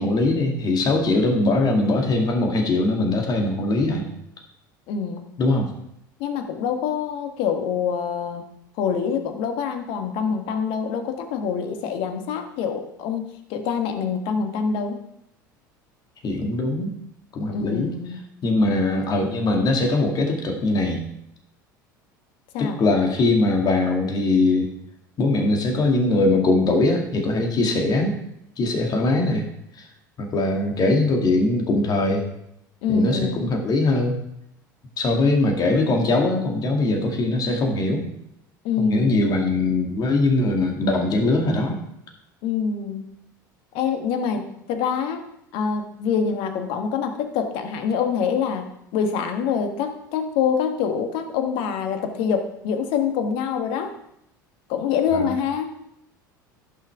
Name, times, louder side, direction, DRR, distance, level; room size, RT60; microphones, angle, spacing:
voice 1, 0.0-4.0 5.4-5.7 16.2-16.9 17.3-17.9 18.4-21.0 22.6-24.7 25.2-28.1 28.6-29.4 29.8-29.9 30.2-32.3 32.9-34.2 35.0-38.1 38.8-41.8 55.1-55.3, left 2 dB, 40° left, 2 dB, 2.1 m, -21 dB
voice 2, 4.9-5.2 6.2-8.4 8.8-13.2 13.5-15.0 17.5-18.2 18.6-19.1 22.5-22.8 32.8-33.4 38.6-39.3 42.4-43.2 43.7-45.2 45.5-53.9 54.7-55.7, left 6 dB, 55° left, 7 dB, 1.3 m, -25 dB
15.0 x 5.9 x 3.4 m, 0.77 s
figure-of-eight pair, 75°, 11 cm